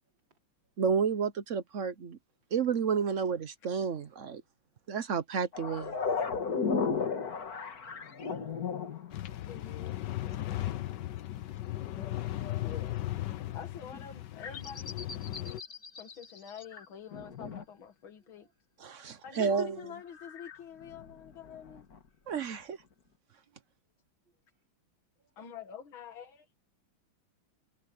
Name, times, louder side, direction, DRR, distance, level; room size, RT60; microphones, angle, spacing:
voice 1, 0.8-2.2 2.5-4.4 4.9-6.0 18.8-19.8 22.3-22.8, right 6 dB, 50° right, 1.0 m, -31 dB
sound 1, 5.5-9.7 13.7-14.0 14.4-16.8 17.1-17.6 20.1-22.0 22.3-22.4, left 5 dB, 50° left, 2.2 m, -35 dB
sound 2, 9.1-15.6, left 14 dB, 65° left, 1.4 m, -37 dB
voice 2, 9.4-10.8 12.6-13.2 13.5-15.0 16.0-18.5 19.2-21.8 25.4-26.5, left 8 dB, 80° left, 2.5 m, -47 dB
voice 3, 11.3-11.7 13.4-13.5 15.4-15.8 18.2-18.5 22.2-22.3 23.5-23.7 24.5-24.6 25.2-25.5, right 5 dB, 65° right, 5.8 m, -75 dB
omnidirectional pair, 2.2 m